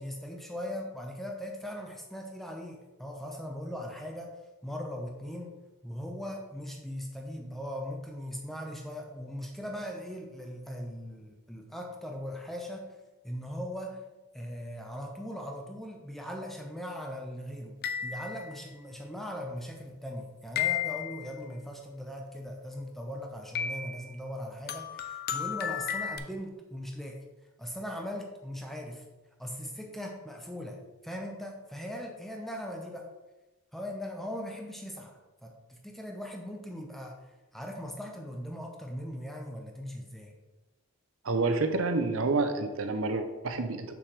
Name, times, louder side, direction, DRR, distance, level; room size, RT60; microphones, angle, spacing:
voice 1, 0.0-4.3 4.6-5.6 5.8-12.9 13.2-14.0 14.3-27.2 27.6-29.0 29.4-33.1 33.7-40.3, equal, ahead, 1 dB, 0.6 m, -39 dB
sound 1, 17.8-18.6 20.6-21.3 23.5-24.1 24.7-26.2, left 9 dB, 45° left, 0.5 m, -33 dB
voice 2, 41.2-43.9, right 3 dB, 70° right, 7 dB, 0.7 m, -28 dB
6.2 x 6.1 x 3.3 m, 1.1 s
head